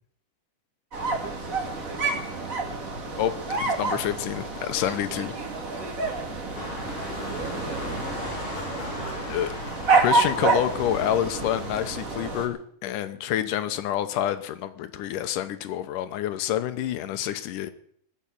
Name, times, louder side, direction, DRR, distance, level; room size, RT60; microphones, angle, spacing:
sound 1, 0.9-12.5, right 3 dB, 30° right, 2.2 m, -28 dB
voice 1, 1.1-3.0 4.8-9.4 9.8-10.3, right 4 dB, 75° right, 1 dB, 5.6 m, -44 dB
voice 2, 3.2-5.3 9.3-9.5 10.0-17.7, left 11 dB, 80° left, 11 dB, 2.4 m, -28 dB
sound 2, 6.5-11.6, left 2 dB, 40° left, 4.8 m, -38 dB
sound 3, 7.1-11.2, left 3 dB, 55° left, 5.9 m, -48 dB
19.5 x 7.4 x 8.4 m, 0.63 s
omnidirectional pair, 3.8 m